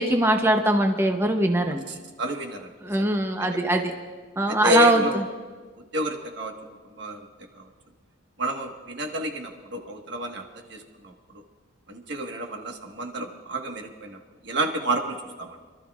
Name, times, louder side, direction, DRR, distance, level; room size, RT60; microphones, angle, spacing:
voice 1, 0.0-1.8 2.8-3.9 4.4-5.0, right 1 dB, 10° right, 4 dB, 0.7 m, -21 dB
voice 2, 1.9-2.7 3.0-3.1 3.5-3.8 4.5-5.2 5.9-6.5 6.9-7.3 7.5-7.7 8.4-10.4 10.7-11.4 11.9-14.2 14.4-15.6, equal, 55° right, 2 dB, 1.4 m, -30 dB
29.0 x 13.0 x 2.4 m, 1.5 s
head